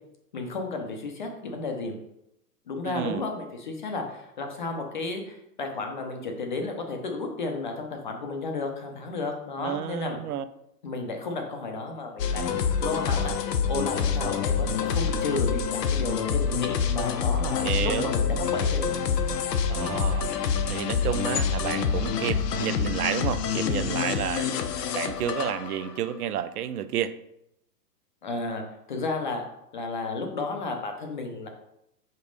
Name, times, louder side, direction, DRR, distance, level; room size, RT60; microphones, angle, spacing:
voice 1, 0.3-1.9 2.7-10.2 10.8-12.4 12.8-18.9 23.6-23.9 28.2-28.6 28.9-29.4 29.7-31.5, left 3 dB, 30° left, 4 dB, 0.6 m, -33 dB
voice 2, 2.8-3.2 9.6-10.5 17.6-18.1 19.7-27.1, right 10 dB, 65° right, 13 dB, 0.5 m, -31 dB
sound 1, 12.2-26.1, left 6 dB, 70° left, 0.8 m, -27 dB
5.3 x 4.0 x 5.1 m, 0.81 s
hypercardioid pair, 170°, 50 cm